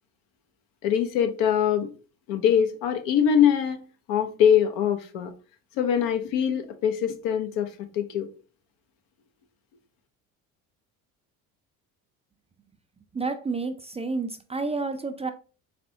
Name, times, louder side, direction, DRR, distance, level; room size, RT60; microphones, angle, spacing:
voice 1, 0.8-1.9 2.3-3.8 4.1-5.3 5.8-8.3, left 8 dB, 70° left, 0.9 m, -23 dB
voice 2, 13.1-15.3, right 3 dB, 15° right, 0.4 m, -30 dB
4.2 x 3.3 x 2.7 m
hypercardioid pair, 60°, 42 cm